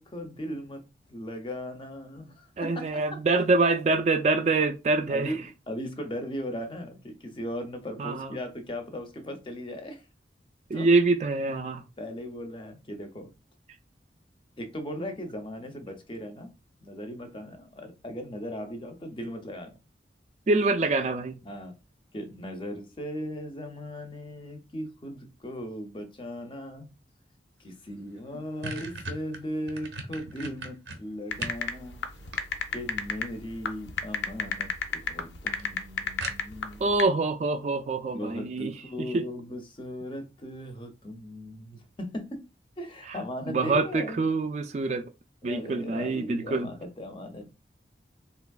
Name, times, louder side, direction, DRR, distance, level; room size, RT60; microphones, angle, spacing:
voice 1, 0.0-2.9 5.1-10.1 10.7-10.9 12.0-13.3 14.6-16.5 16.8-19.8 21.4-21.7 22.1-26.9 27.6-32.1 32.7-36.8 38.1-42.5 42.8-44.2 45.4-47.5, equal, 30° left, 0.5 m, -38 dB
voice 2, 2.6-5.3 8.0-8.4 10.7-11.8 20.5-21.4 36.8-38.7 39.0-39.2 43.1-43.2 43.4-45.1 45.4-46.7, right 3 dB, 40° right, 0.3 m, -25 dB
sound 1, 27.8-27.9 28.2-31.6 32.0-32.9 34.0-34.4 34.8-34.9 35.2-35.3 35.6-35.7 36.2-36.8, right 3 dB, 80° right, 0.7 m, -39 dB
sound 2, 31.3-37.0, left 6 dB, 80° left, 0.5 m, -30 dB
3.4 x 2.9 x 2.3 m
head